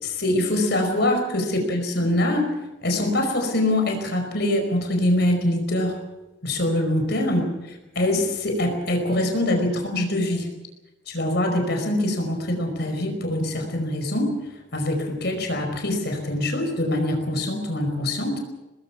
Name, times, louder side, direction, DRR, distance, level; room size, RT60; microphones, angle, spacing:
voice 1, 0.0-2.5 2.8-6.0 6.4-7.4 7.9-10.5 11.1-14.3 14.7-18.4, left 1 dB, 60° left, 4 dB, 5.1 m, -24 dB
25.5 x 20.0 x 5.9 m, 1.0 s
head